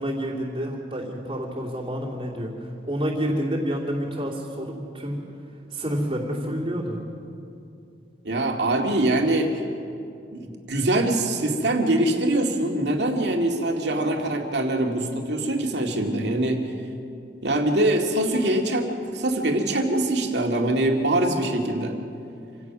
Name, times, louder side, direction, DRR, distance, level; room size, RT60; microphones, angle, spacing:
voice 1, 0.0-2.5 2.9-5.2 5.7-7.0, equal, 25° right, -6 dB, 2.9 m, -28 dB
voice 2, 8.2-9.6 10.3-16.6 17.4-18.9 19.1-22.0, right 1 dB, 70° right, 2 dB, 2.2 m, -23 dB
27.0 x 16.5 x 6.1 m, 2.6 s
head